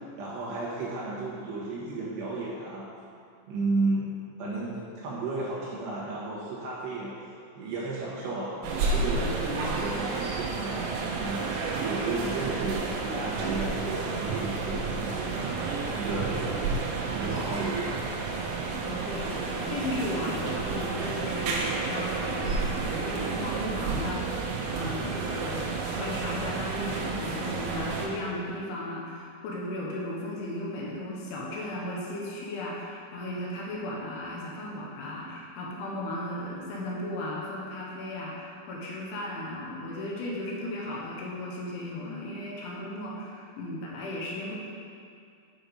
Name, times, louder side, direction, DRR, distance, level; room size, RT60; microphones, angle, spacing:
voice 1, 0.2-2.9 3.5-7.2 7.5-11.5 11.8-16.7 17.1-18.0, right 2 dB, 70° right, -6 dB, 3.1 m, -33 dB
sound 1, 8.6-28.1, right 4 dB, 85° right, 3.6 m, -31 dB
voice 2, 18.7-44.6, left 1 dB, 75° left, -4 dB, 3.3 m, -35 dB
8.7 x 5.3 x 5.3 m, 2.4 s
omnidirectional pair, 5.8 m